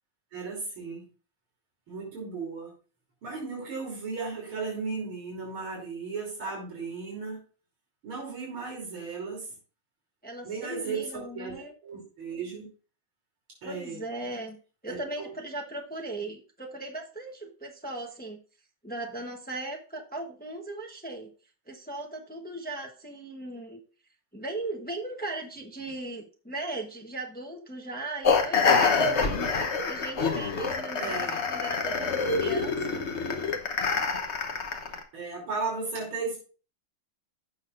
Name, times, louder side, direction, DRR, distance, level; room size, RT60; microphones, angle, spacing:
voice 1, 0.3-1.1 1.9-2.7 3.2-7.4 8.0-9.5 10.4-12.6 13.6-14.0 14.9-15.3 31.0-31.4 35.1-36.4, right 4 dB, 85° right, -2 dB, 4.0 m, -35 dB
voice 2, 10.2-11.7 13.6-14.6 14.8-18.4 18.8-21.3 21.7-23.8 24.3-29.4 29.9-33.0, right 2 dB, 10° left, 1 dB, 0.4 m, -38 dB
sound 1, 28.2-35.0, left 4 dB, 45° left, 1.0 m, -26 dB
15.0 x 6.2 x 2.5 m, 0.37 s
omnidirectional pair, 2.2 m